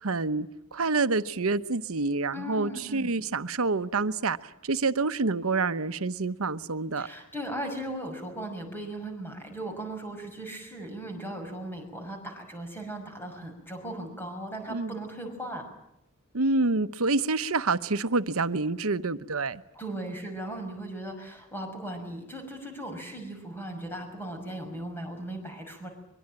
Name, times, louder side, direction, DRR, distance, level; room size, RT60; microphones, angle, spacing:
voice 1, 0.0-7.1 14.7-14.9 16.3-19.6, right 3 dB, 80° right, 1.0 m, -27 dB
voice 2, 2.3-3.1 7.0-15.7 19.7-25.9, right 1 dB, 10° left, 6.0 m, -37 dB
23.5 x 23.5 x 8.9 m
head